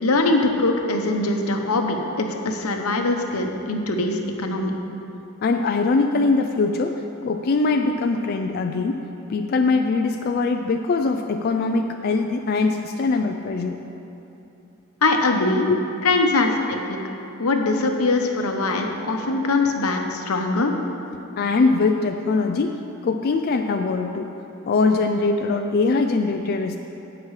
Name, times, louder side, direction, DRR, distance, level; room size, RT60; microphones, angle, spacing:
voice 1, 0.0-4.7 15.0-15.7 16.0-17.0 17.4-20.7, left 2 dB, 85° left, 3 dB, 0.9 m, -22 dB
voice 2, 5.4-7.0 7.2-9.0 9.3-13.8 15.7-15.8 21.4-22.8 23.0-24.3 24.7-26.8, left 3 dB, 45° left, 5 dB, 0.3 m, -22 dB
16.5 x 6.0 x 3.2 m, 2.9 s
head